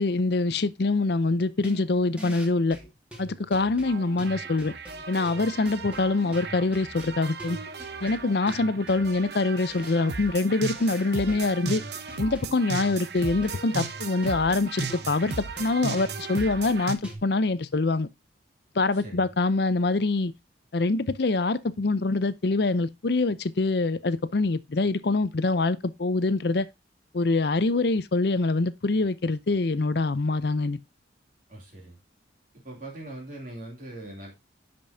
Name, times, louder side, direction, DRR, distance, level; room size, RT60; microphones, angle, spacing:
voice 1, 0.0-2.8 3.2-4.7 5.1-7.6 8.0-11.8 12.2-15.3 15.6-18.1 18.8-20.3 20.7-26.7 27.1-30.8, left 3 dB, 60° left, 0.6 m, -25 dB
sound 1, 1.6-17.2, equal, 5° right, 2.1 m, -44 dB
sound 2, 3.8-16.9, right 5 dB, 60° right, 0.8 m, -36 dB
voice 2, 18.9-19.3 31.5-32.0 32.6-34.3, right 1 dB, 45° right, 2.7 m, -41 dB
10.5 x 5.3 x 2.7 m
head